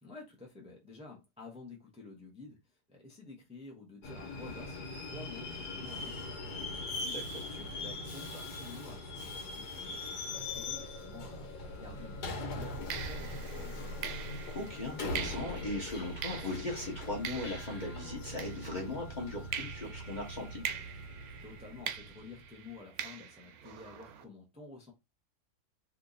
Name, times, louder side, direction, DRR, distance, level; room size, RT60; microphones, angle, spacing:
voice 1, 0.0-6.9 7.1-11.5 11.7-14.0 21.4-24.9, left 3 dB, 5° right, 0.6 m, -51 dB
Subway metro underground, 4.0-22.5, left 2 dB, 80° left, 1.5 m, -42 dB
voice 2, 7.0-7.4 14.5-20.6, left 2 dB, 35° left, 0.9 m, -38 dB
sound 1, 10.3-15.7, equal, 55° left, 1.3 m, -45 dB
sound 2, 11.7-12.0 12.9-19.1 19.5-24.2, right 9 dB, 70° right, 1.0 m, -43 dB
2.9 x 2.6 x 3.9 m
omnidirectional pair, 1.7 m